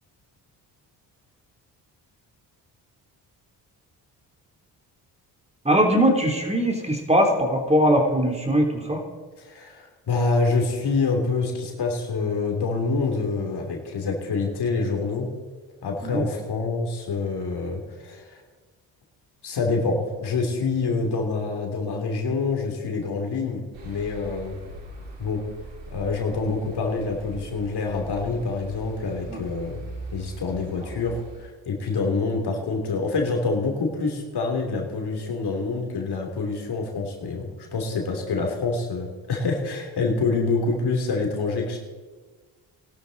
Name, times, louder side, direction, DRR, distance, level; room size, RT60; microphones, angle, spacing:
voice 1, 5.6-9.0 16.0-16.2 29.3-29.4, equal, 15° right, 1 dB, 3.4 m, -21 dB
voice 2, 9.4-15.3 15.8-18.4 19.4-24.6 25.2-25.4 25.9-29.8 30.1-41.8, left 4 dB, 60° left, 1 dB, 3.1 m, -26 dB
sound 1, 23.7-31.5, right 2 dB, 85° right, 3.8 m, -41 dB
19.0 x 12.0 x 4.1 m, 1.4 s
supercardioid pair, 55°, 45 cm